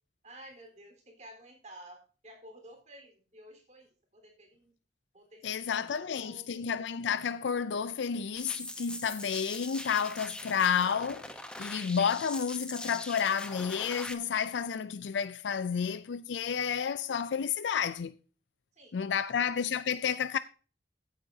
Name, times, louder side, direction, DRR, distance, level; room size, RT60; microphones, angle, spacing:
voice 1, 0.2-4.7 5.1-6.7 18.7-19.4, right 1 dB, 40° right, 4.0 m, -53 dB
voice 2, 5.4-11.3 11.6-18.1 18.9-20.4, left 7 dB, 85° left, 0.4 m, -31 dB
sound 1, 8.4-14.1, left 1 dB, 5° left, 0.9 m, -42 dB
15.0 x 8.7 x 2.8 m
head